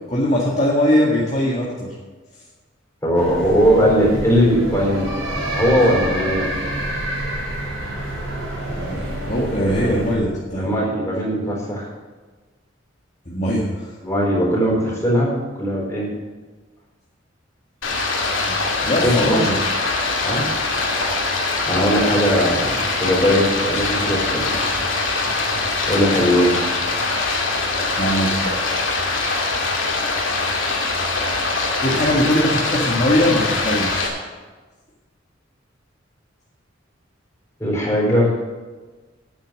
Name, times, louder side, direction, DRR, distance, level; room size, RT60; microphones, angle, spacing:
voice 1, 0.1-1.9 8.7-10.7 13.2-14.0 18.5-18.6 18.8-19.5 27.7-28.6 31.8-34.1, equal, 35° left, -5 dB, 1.7 m, -21 dB
voice 2, 3.0-5.1 5.5-6.5 10.6-11.9 14.0-16.1 18.8-19.4 20.2-20.5 21.7-24.6 25.9-26.6 37.6-38.3, equal, 15° left, -3 dB, 4.2 m, -19 dB
sound 1, 3.1-10.2, right 1 dB, 75° right, 4.3 m, -27 dB
Stream, 17.8-34.1, left 3 dB, 85° left, 2.4 m, -22 dB
9.6 x 8.6 x 7.4 m, 1.3 s
head